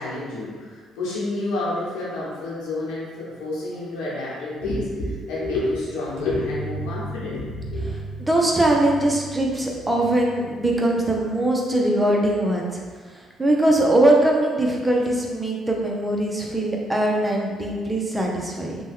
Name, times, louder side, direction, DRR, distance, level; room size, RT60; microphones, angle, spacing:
voice 1, 0.0-7.9, left 2 dB, 85° left, -7 dB, 1.0 m, -29 dB
sound 1, 6.2-11.7, right 1 dB, 80° right, 0.5 m, -37 dB
voice 2, 8.2-12.8 13.1-18.8, right 1 dB, 15° right, -1 dB, 0.6 m, -21 dB
2.9 x 2.2 x 3.5 m, 1.5 s
supercardioid pair, 80°, 0 cm